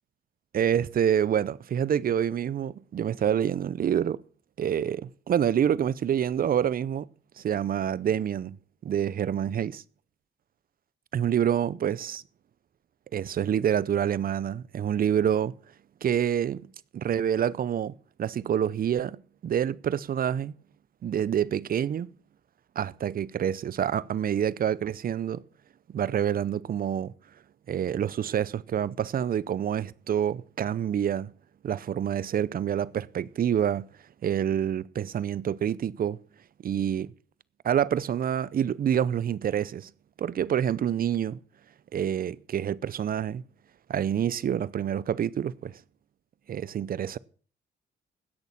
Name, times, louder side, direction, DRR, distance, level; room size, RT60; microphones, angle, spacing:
voice 1, 0.5-4.2 4.6-7.1 7.4-8.6 8.8-9.8 11.1-12.2 13.1-15.5 16.0-16.7 16.9-20.5 21.0-22.1 22.8-25.4 25.9-27.1 27.7-31.3 31.6-33.9 34.2-36.2 36.6-37.1 37.6-39.9 40.2-41.4 41.9-43.4 43.9-45.7 46.5-47.2, right 9 dB, 45° right, 0.6 m, -27 dB
16.5 x 6.6 x 7.2 m
cardioid pair, 90°, 20 cm